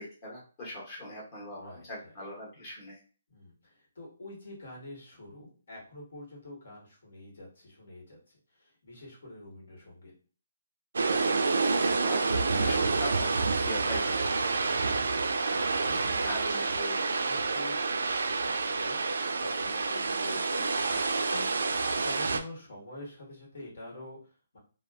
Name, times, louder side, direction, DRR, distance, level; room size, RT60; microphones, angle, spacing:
voice 1, 0.0-3.0 12.0-14.2 16.2-16.7, left 1 dB, 25° left, -4 dB, 0.9 m, -40 dB
voice 2, 1.5-2.1 3.3-10.1 14.6-21.6 22.0-24.6, left 1 dB, 70° left, -2 dB, 1.3 m, -47 dB
sound 1, 10.9-22.4, right 4 dB, 80° right, 0.3 m, -28 dB
2.5 x 2.3 x 2.3 m, 0.38 s
hypercardioid pair, 170°, 0 cm